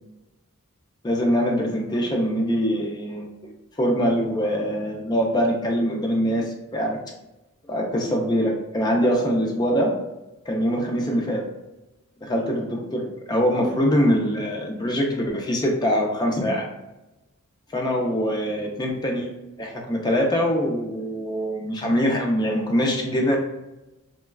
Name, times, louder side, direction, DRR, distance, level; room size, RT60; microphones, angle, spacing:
voice 1, 1.0-7.0 7.7-9.9 10.5-11.4 12.2-16.7 17.7-19.3 19.6-23.4, equal, 20° left, 0 dB, 0.4 m, -23 dB
3.1 x 2.2 x 2.2 m, 0.98 s
head